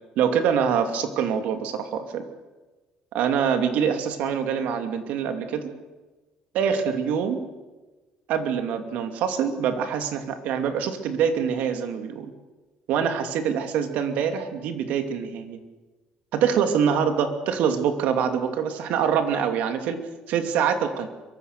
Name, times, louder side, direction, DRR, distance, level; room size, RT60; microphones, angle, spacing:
voice 1, 0.2-2.3 3.1-5.7 6.5-7.4 8.3-12.3 12.9-15.6 16.3-20.0 20.3-21.1, right 7 dB, 65° right, 6 dB, 2.8 m, -25 dB
24.5 x 23.5 x 6.8 m, 1.2 s
cardioid pair, 170°, 3 cm